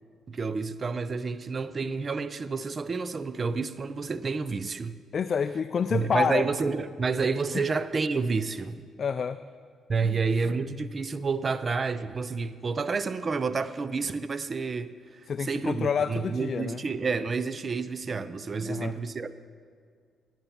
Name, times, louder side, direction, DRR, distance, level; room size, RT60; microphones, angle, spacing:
voice 1, 0.3-5.0 5.9-8.8 9.9-14.9 15.4-19.3, right 4 dB, 40° right, 14 dB, 0.5 m, -29 dB
voice 2, 5.1-6.4 7.5-7.6 9.0-9.4 15.3-16.8 18.6-18.9, left 6 dB, 50° left, 10 dB, 0.4 m, -28 dB
10.5 x 9.2 x 7.2 m, 2.1 s
cardioid pair, 90°, 0 cm